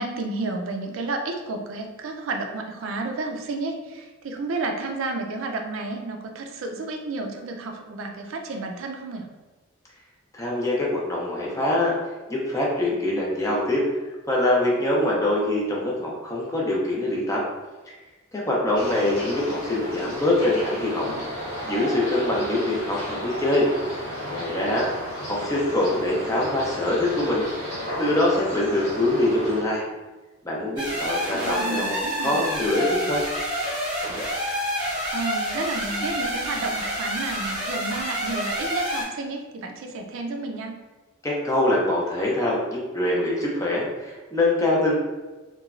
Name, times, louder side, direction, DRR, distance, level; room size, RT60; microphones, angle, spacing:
voice 1, 0.0-9.3 18.9-19.3 31.3-32.4 34.8-40.7, right 3 dB, 70° right, 3 dB, 0.4 m, -31 dB
voice 2, 10.3-11.9 12.3-13.8 14.3-17.4 17.9-18.0 18.3-21.1 21.6-23.7 24.3-24.9 25.3-27.7 28.0-29.8 30.4-33.2 41.2-45.0, left 1 dB, 15° left, -4 dB, 0.5 m, -24 dB
sound 1, 18.7-29.6, equal, 65° left, 1.1 m, -33 dB
sound 2, 30.8-39.0, equal, 20° right, 0.8 m, -28 dB
3.0 x 2.2 x 2.4 m, 1.2 s
head